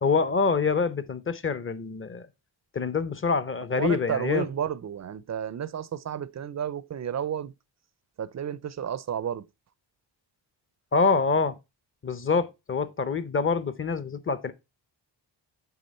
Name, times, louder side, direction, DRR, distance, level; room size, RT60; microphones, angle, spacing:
voice 1, 0.0-2.3 2.7-4.5 10.9-11.6 12.0-14.5, left 5 dB, 25° left, 0.6 m, -26 dB
voice 2, 3.7-7.5 8.2-9.4, right 9 dB, 40° right, 0.4 m, -32 dB
8.6 x 3.5 x 4.2 m
cardioid pair, 110°, 46 cm